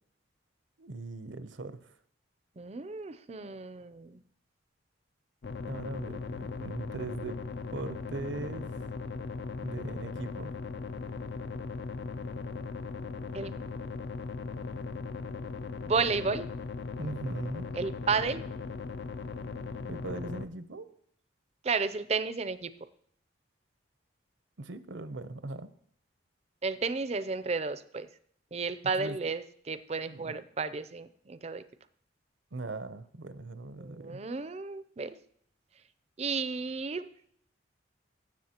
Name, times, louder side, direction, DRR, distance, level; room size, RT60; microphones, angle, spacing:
voice 1, 0.8-2.0 5.7-7.4 7.7-8.8 9.6-10.6 17.0-17.7 19.9-20.9 24.6-25.7 29.0-29.2 30.1-30.4 32.5-34.2, right 2 dB, 70° right, 12 dB, 0.7 m, -40 dB
voice 2, 2.6-4.2 13.3-13.6 15.9-16.5 17.7-18.4 21.6-22.7 26.6-28.1 28.5-31.6 33.8-35.2 36.2-37.1, right 4 dB, 35° right, 13 dB, 0.5 m, -32 dB
sound 1, 5.4-20.5, left 4 dB, 55° left, 0.5 m, -38 dB
17.0 x 7.4 x 2.9 m, 0.64 s
head